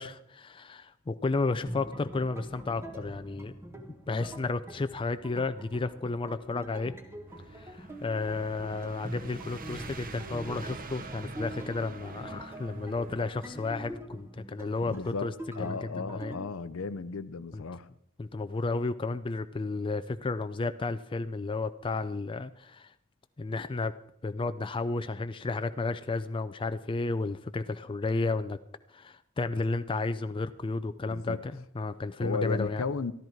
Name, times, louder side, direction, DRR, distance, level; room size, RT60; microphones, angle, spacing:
voice 1, 0.0-3.5 4.1-6.9 7.5-16.3 17.5-17.6 18.2-22.9 23.4-23.9 24.2-28.6 28.9-32.8, left 3 dB, 25° left, 0.4 m, -32 dB
sound 1, 1.7-16.4, equal, 10° right, 1.4 m, -44 dB
sound 2, 7.3-14.0, right 3 dB, 40° right, 0.9 m, -46 dB
voice 2, 14.9-17.9 31.1-31.4 32.2-33.1, left 4 dB, 65° left, 0.6 m, -35 dB
13.5 x 13.0 x 4.6 m
head